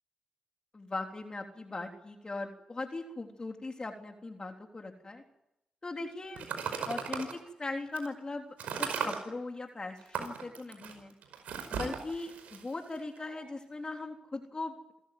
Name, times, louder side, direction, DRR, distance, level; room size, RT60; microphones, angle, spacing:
voice 1, 0.7-5.2 5.8-6.5 6.8-11.1 11.7-14.9, left 3 dB, 35° left, 3 dB, 3.5 m, -39 dB
sound 1, 6.3-7.3 7.9-8.1 8.6-9.2 10.0-13.5, right 7 dB, 80° right, 5.1 m, -37 dB
27.0 x 14.5 x 9.5 m, 0.86 s
supercardioid pair, 50°, 2 cm